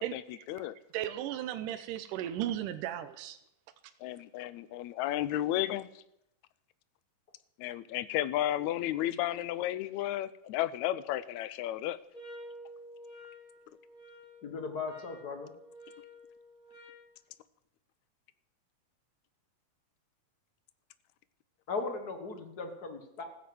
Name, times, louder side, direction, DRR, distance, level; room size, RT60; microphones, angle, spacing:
voice 1, 0.0-0.5 0.9-3.4, right 11 dB, 85° right, 10 dB, 2.3 m, -36 dB
voice 2, 4.0-5.9 7.6-12.0, left 13 dB, 75° left, 15 dB, 1.8 m, -33 dB
sound 1, 12.1-17.1, equal, 15° right, 4.4 m, -51 dB
voice 3, 14.4-15.5 21.7-23.2, left 4 dB, 40° left, 6 dB, 1.5 m, -37 dB
14.5 x 10.0 x 7.8 m, 0.82 s
omnidirectional pair, 3.7 m